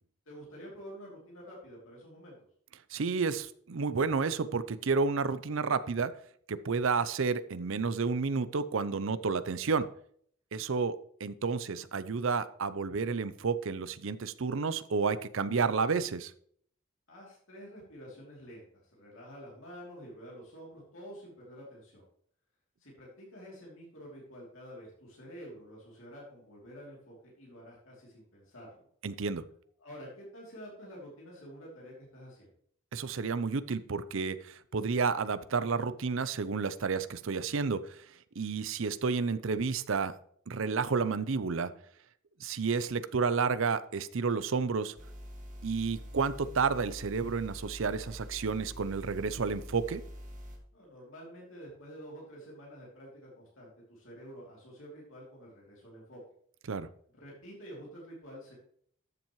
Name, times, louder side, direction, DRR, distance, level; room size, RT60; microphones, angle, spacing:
voice 1, 0.3-2.4 17.1-22.0 22.8-28.9 29.8-32.5 50.7-56.2 57.1-58.6, equal, 65° left, -3 dB, 3.0 m, -49 dB
voice 2, 2.9-6.1 6.5-9.9 10.5-16.3 29.0-29.4 32.9-38.0 38.4-40.1 40.5-41.7 42.4-44.9 45.6-50.0 56.7-56.9, right 5 dB, 65° right, 14 dB, 0.5 m, -31 dB
sound 1, 45.0-50.6, equal, 35° right, 1.7 m, -45 dB
13.0 x 7.3 x 3.1 m, 0.62 s
head